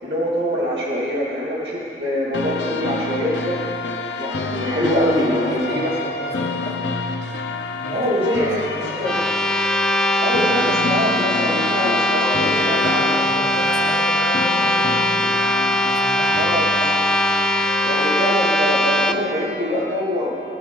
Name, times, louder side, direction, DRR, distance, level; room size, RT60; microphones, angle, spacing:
voice 1, 0.0-3.6 4.2-5.9 7.9-8.6 9.0-9.1 10.2-13.1 16.4-16.6 17.8-20.3, equal, 70° right, -6 dB, 2.5 m, -23 dB
sound 1, 2.3-18.3, left 4 dB, 90° left, 0.8 m, -28 dB
voice 2, 5.1-7.0 7.8-9.1 12.3-15.4 15.9-16.5, equal, 60° left, -6 dB, 2.9 m, -33 dB
sound 2, 9.0-19.1, left 1 dB, 5° left, 0.4 m, -20 dB
19.5 x 9.1 x 4.0 m, 2.7 s
head